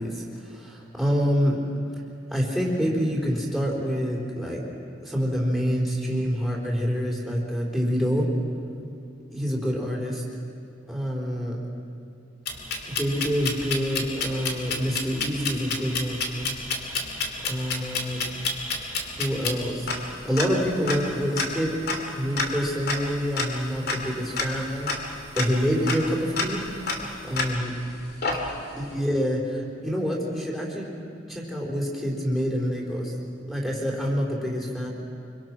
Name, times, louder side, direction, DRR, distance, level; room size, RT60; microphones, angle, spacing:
voice 1, 0.0-1.6 2.3-4.6 5.0-8.3 9.3-10.2 10.9-11.6 12.8-16.5 17.4-18.2 19.2-19.9 20.2-21.7 22.1-24.9 25.3-26.6 27.2-27.7 28.7-30.9 31.3-33.1 33.5-34.9, equal, ahead, -2 dB, 4.3 m, -27 dB
sound 1, 12.5-27.8 28.2-28.8, left 3 dB, 55° left, 2.8 m, -30 dB
26.0 x 25.0 x 6.2 m, 2.5 s
head